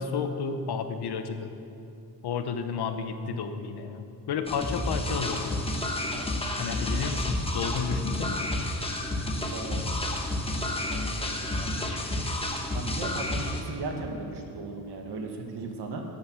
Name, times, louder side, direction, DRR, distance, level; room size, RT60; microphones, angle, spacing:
voice 1, 0.0-1.6 2.2-5.6 6.6-8.4, left 6 dB, 80° left, 8 dB, 1.0 m, -32 dB
sound 1, 4.5-13.6, left 1 dB, 15° left, 1.1 m, -30 dB
voice 2, 9.4-9.9 12.7-16.0, right 3 dB, 90° right, 3 dB, 1.7 m, -37 dB
12.5 x 8.8 x 6.3 m, 2.7 s
wide cardioid pair, 140°, 39 cm